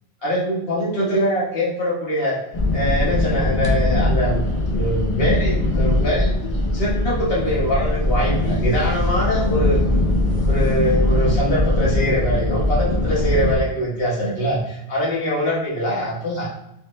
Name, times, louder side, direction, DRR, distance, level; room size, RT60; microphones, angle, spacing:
voice 1, 0.2-2.4 2.7-4.4 4.7-9.8 10.4-16.5, equal, 70° left, -5 dB, 1.4 m, -23 dB
sound 1, 2.5-13.6, left 1 dB, 40° left, 0.7 m, -20 dB
3.5 x 3.2 x 3.0 m, 0.81 s
omnidirectional pair, 1.1 m